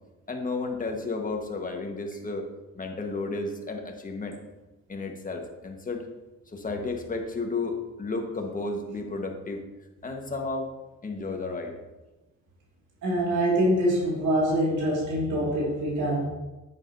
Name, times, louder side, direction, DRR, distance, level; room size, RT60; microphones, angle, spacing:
voice 1, 0.3-2.5 2.7-4.4 4.9-6.1 6.5-9.6 10.0-10.7 11.0-11.7, left 3 dB, 25° left, 3 dB, 1.4 m, -32 dB
voice 2, 13.0-16.2, equal, 80° right, -4 dB, 2.3 m, -24 dB
9.8 x 8.2 x 2.7 m, 1.1 s
cardioid pair, 90°, 30 cm